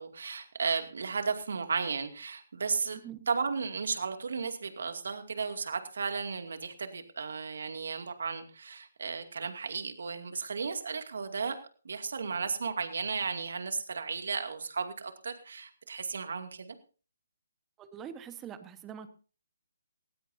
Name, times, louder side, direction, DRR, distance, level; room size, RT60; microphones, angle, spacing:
voice 1, 0.0-3.0 3.3-11.6 11.8-16.8, right 5 dB, 65° right, 7 dB, 2.5 m, -34 dB
voice 2, 2.9-3.2 17.8-19.1, right 8 dB, 15° right, 11 dB, 1.3 m, -44 dB
19.0 x 16.5 x 2.8 m, 0.37 s
hypercardioid pair, 155°, 0 cm